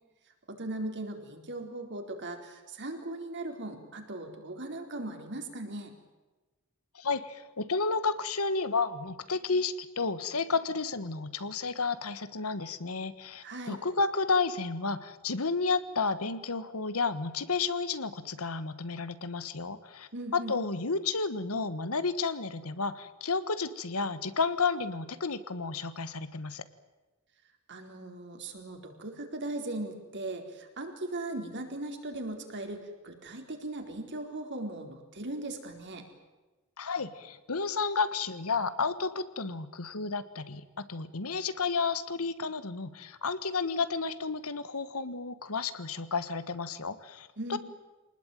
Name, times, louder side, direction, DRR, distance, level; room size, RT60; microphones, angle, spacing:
voice 1, 0.5-5.9 13.4-13.8 20.1-20.5 27.7-36.0 47.4-47.6, right 2 dB, 55° right, 4 dB, 4.2 m, -38 dB
voice 2, 6.9-26.6 36.8-47.6, left 4 dB, 80° left, 13 dB, 1.5 m, -32 dB
25.5 x 19.5 x 9.3 m, 1.2 s
head